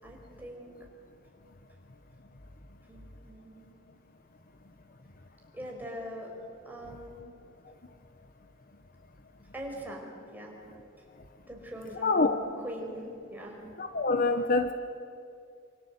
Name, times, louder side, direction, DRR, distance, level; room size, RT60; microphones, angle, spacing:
voice 1, 0.0-0.7 2.9-3.8 5.5-6.3 6.6-7.2 9.5-10.6 11.5-13.6 14.3-14.4, equal, 10° right, 5.5 m, -42 dB
voice 2, 12.0-12.4 13.8-14.7, left 3 dB, 45° left, 1.0 m, -25 dB
27.0 x 26.0 x 8.1 m
head